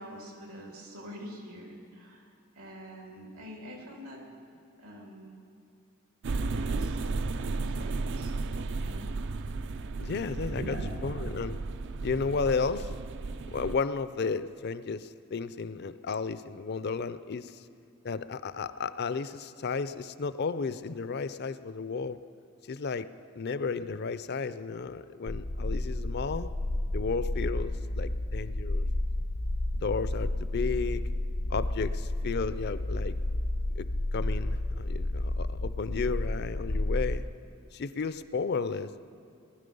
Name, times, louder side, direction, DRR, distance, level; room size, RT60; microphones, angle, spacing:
voice 1, 0.0-2.3 2.5-4.2 4.8-5.3 6.4-7.0 7.7-8.3 8.8-9.1 10.4-11.0, equal, 90° right, 0 dB, 3.0 m, -44 dB
sound 1, 6.2-13.7, right 3 dB, 55° right, 0.4 m, -34 dB
voice 2, 10.0-11.6 12.0-12.9 13.5-17.7 18.0-22.2 22.7-23.1 23.3-26.5 26.9-28.9 29.7-31.0 31.5-33.2 33.8-37.3 37.7-39.0, left 4 dB, 50° left, 14 dB, 0.5 m, -33 dB
sound 2, 25.3-37.2, left 1 dB, 85° left, 0.8 m, -31 dB
19.0 x 11.5 x 5.4 m, 2.4 s
head